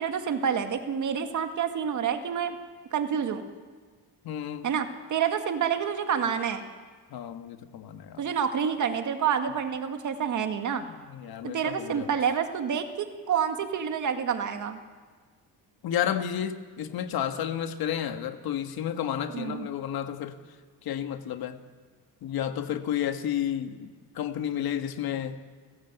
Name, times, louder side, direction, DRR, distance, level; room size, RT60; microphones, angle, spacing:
voice 1, 0.0-2.6 2.9-3.4 4.6-6.6 8.2-10.8 11.4-14.8 19.3-19.7, right 7 dB, 50° right, 6 dB, 2.0 m, -28 dB
voice 2, 4.2-4.7 7.1-8.3 10.9-12.1 15.8-20.3 20.8-21.6 22.2-25.4, left 10 dB, 65° left, 8 dB, 1.7 m, -31 dB
30.0 x 15.5 x 8.1 m, 1.5 s
cardioid pair, 155°, 39 cm